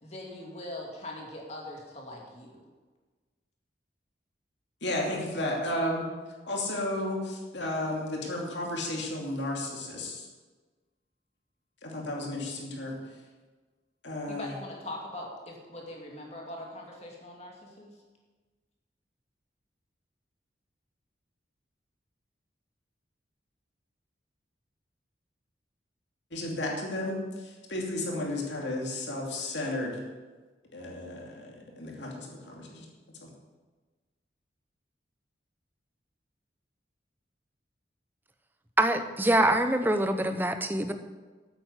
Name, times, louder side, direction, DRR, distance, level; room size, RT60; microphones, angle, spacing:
voice 1, 0.0-2.6 14.3-17.9, left 1 dB, 35° left, -1 dB, 2.6 m, -41 dB
voice 2, 4.8-6.1 6.5-10.3 11.8-13.0 14.0-14.5 26.3-30.0 30.7-32.9 33.2-33.3, left 1 dB, 75° left, -1 dB, 2.7 m, -33 dB
voice 3, 38.8-40.9, right 1 dB, 10° right, 7 dB, 0.7 m, -25 dB
9.2 x 9.0 x 8.2 m, 1.3 s
head